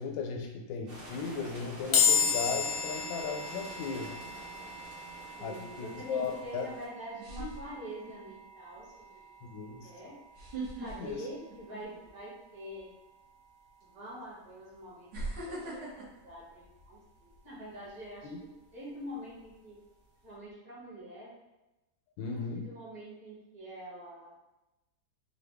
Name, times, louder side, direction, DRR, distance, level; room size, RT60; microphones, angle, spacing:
voice 1, 0.0-4.2 5.4-6.7 9.4-9.9 11.0-11.2 15.6-15.7 18.2-18.4 22.2-22.7, left 5 dB, 85° left, 3 dB, 1.3 m, -36 dB
sound 1, 0.9-6.9, right 1 dB, 45° right, 0.8 m, -48 dB
sound 2, 1.9-15.3, left 6 dB, 60° left, 0.6 m, -35 dB
sound 3, 4.1-4.5 6.4-6.5 7.2-8.3 8.8-9.0 10.3-12.2 12.5-12.8 13.8-13.9 15.1-17.4 17.8-18.1, right 2 dB, 80° right, 1.9 m, -41 dB
voice 2, 5.4-9.2 9.8-10.1 10.8-12.9 13.8-15.8 16.2-18.3 18.7-19.8 20.2-21.3 22.3-24.4, equal, 65° right, -7 dB, 2.0 m, -45 dB
4.8 x 2.2 x 3.4 m, 0.98 s
omnidirectional pair, 1.9 m